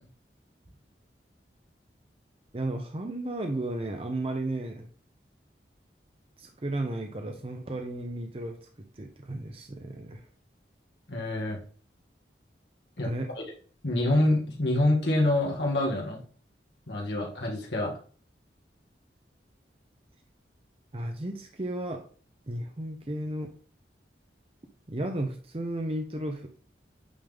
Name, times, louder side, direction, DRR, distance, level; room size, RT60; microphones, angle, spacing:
voice 1, 2.5-4.9 6.4-8.7 8.9-10.3 13.0-13.3 20.9-22.1 22.5-23.5 24.9-26.5, right 1 dB, 30° right, 4 dB, 0.7 m, -34 dB
voice 2, 11.1-11.6 13.0-13.1 13.8-16.2 16.9-17.9, left 1 dB, 75° left, -2 dB, 1.9 m, -26 dB
8.7 x 3.7 x 3.5 m, 0.42 s
head